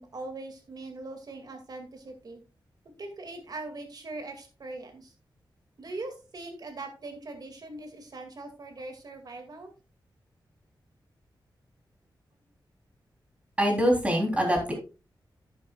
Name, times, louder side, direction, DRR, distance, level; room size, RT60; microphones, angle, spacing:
voice 1, 0.0-2.4 3.0-5.1 5.8-9.7, right 2 dB, 55° right, 5 dB, 2.3 m, -41 dB
voice 2, 13.6-14.7, equal, 15° right, 1 dB, 3.5 m, -24 dB
11.0 x 9.8 x 2.4 m, 0.31 s
wide cardioid pair, 130°, 8 cm